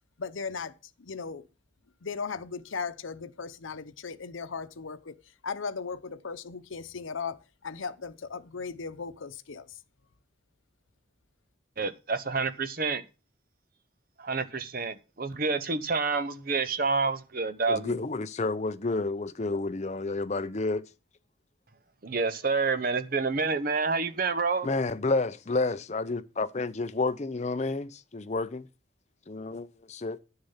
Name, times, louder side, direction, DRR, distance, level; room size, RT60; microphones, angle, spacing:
voice 1, 0.2-1.5 2.0-5.2 5.4-9.8, left 5 dB, 85° left, 0.8 m, -37 dB
voice 2, 11.8-13.0 14.2-17.9 22.0-24.7, right 4 dB, 45° right, 0.8 m, -28 dB
voice 3, 17.7-20.8 24.6-28.7 29.3-30.2, left 3 dB, 35° left, 0.6 m, -30 dB
10.0 x 6.7 x 5.6 m
head